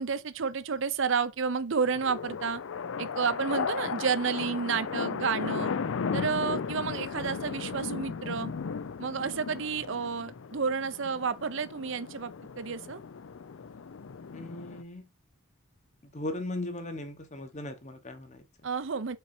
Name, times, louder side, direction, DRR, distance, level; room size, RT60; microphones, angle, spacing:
voice 1, 0.0-2.6 3.0-5.7 6.1-8.5 9.0-13.0 18.6-19.2, right 5 dB, 55° right, 0.5 m, -31 dB
sound 1, 1.8-14.8, left 5 dB, 60° left, 0.4 m, -36 dB
voice 2, 14.3-15.0 16.0-18.4, left 2 dB, 30° left, 1.1 m, -38 dB
5.6 x 4.5 x 4.3 m
head